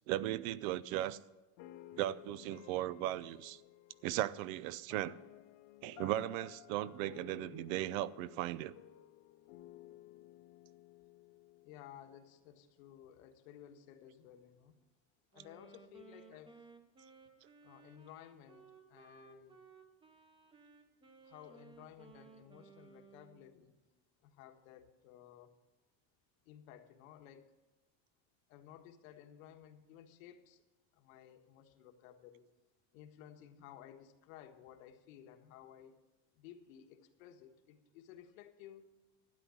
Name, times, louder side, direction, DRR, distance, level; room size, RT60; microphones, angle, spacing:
voice 1, 0.1-1.2 2.0-3.6 4.0-5.2 5.8-8.7, right 14 dB, 80° right, 0.7 m, -37 dB
sound 1, 1.6-12.7, left 15 dB, 60° left, 0.9 m, -56 dB
voice 2, 11.6-14.7 15.3-16.6 17.6-19.6 21.2-23.7 24.2-25.5 26.4-27.5 28.5-30.6 30.9-32.5 32.9-36.0 36.3-38.9, left 10 dB, 80° left, 1.5 m, -56 dB
Wind instrument woodwind instrument, 15.3-23.5, right 4 dB, 10° right, 0.8 m, -60 dB
12.5 x 9.6 x 6.3 m
cardioid pair, 170°, 40 cm